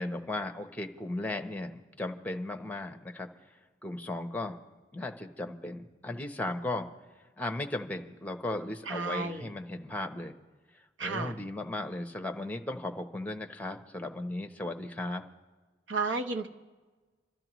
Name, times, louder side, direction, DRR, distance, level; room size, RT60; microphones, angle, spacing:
voice 1, 0.0-3.3 3.8-4.6 4.9-6.9 7.4-10.3 11.0-15.2, left 2 dB, 10° left, 5 dB, 0.8 m, -36 dB
voice 2, 8.9-9.4 11.0-11.3 15.9-16.5, right 3 dB, 75° right, 4 dB, 1.0 m, -32 dB
28.5 x 12.5 x 3.0 m, 1.3 s
head